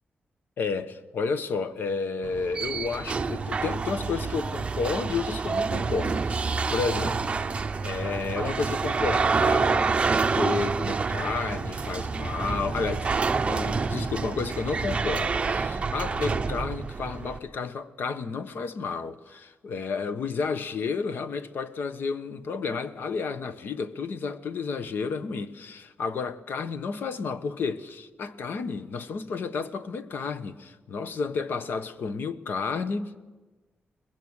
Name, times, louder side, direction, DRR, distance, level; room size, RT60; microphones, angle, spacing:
voice 1, 0.6-7.5 7.8-33.2, left 4 dB, 70° left, 1.2 m, -31 dB
sound 1, 2.2-17.4, right 4 dB, 30° right, 0.8 m, -28 dB
23.5 x 20.5 x 6.5 m
wide cardioid pair, 140°, 4 cm